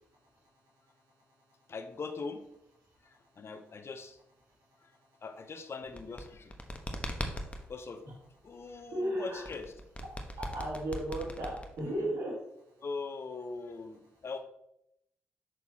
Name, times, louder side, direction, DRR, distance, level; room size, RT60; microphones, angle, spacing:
voice 1, 1.7-2.4 3.0-4.2 4.8-4.9 5.2-6.5 7.7-8.1 8.4-9.7 12.8-14.4, left 4 dB, 50° left, 8 dB, 0.8 m, -41 dB
sound 1, 5.8-7.6 9.4-12.0, left 1 dB, 25° left, 1.1 m, -39 dB
voice 2, 8.9-9.4 10.1-12.3, right 1 dB, 75° right, -5 dB, 2.4 m, -36 dB
6.8 x 6.0 x 2.8 m, 0.81 s
hypercardioid pair, 45°, 6 cm